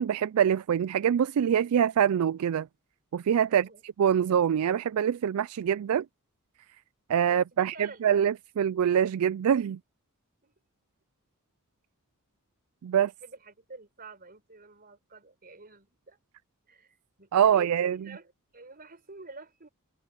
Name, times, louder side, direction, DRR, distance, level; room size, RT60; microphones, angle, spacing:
voice 1, 0.0-2.7 3.1-6.1 7.1-9.8 12.8-13.1 17.3-18.0, right 8 dB, 75° right, 0.4 m, -25 dB
voice 2, 3.5-3.8 7.2-8.1 10.4-10.5 12.9-16.2 16.7-19.7, right 3 dB, 45° right, 4.2 m, -49 dB
head